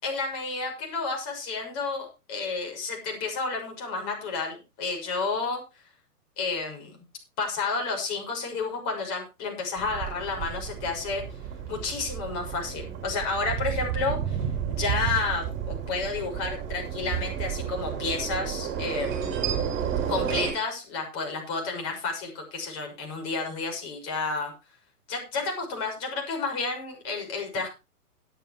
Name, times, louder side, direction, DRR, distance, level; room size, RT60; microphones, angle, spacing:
voice 1, 0.0-5.6 6.4-6.9 7.4-11.2 11.7-14.4 14.7-19.3 20.1-24.5 25.1-27.7, left 4 dB, 30° left, 2 dB, 6.3 m, -31 dB
sound 1, 9.8-20.5, right 8 dB, 25° right, 5.2 m, -31 dB
18.0 x 9.2 x 3.2 m, 0.28 s
figure-of-eight pair, 120°, 46 cm